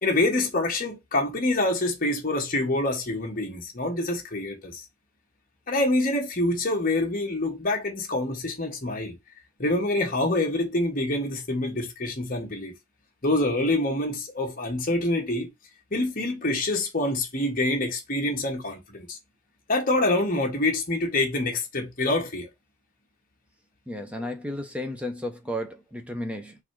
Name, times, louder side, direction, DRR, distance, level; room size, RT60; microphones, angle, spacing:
voice 1, 0.0-4.8 5.7-9.2 9.6-12.7 13.2-15.5 15.9-19.2 19.7-22.5 24.2-24.3, left 2 dB, 40° left, 1.2 m, -26 dB
voice 2, 23.9-26.6, left 1 dB, 5° right, 0.7 m, -33 dB
4.0 x 2.7 x 4.6 m
head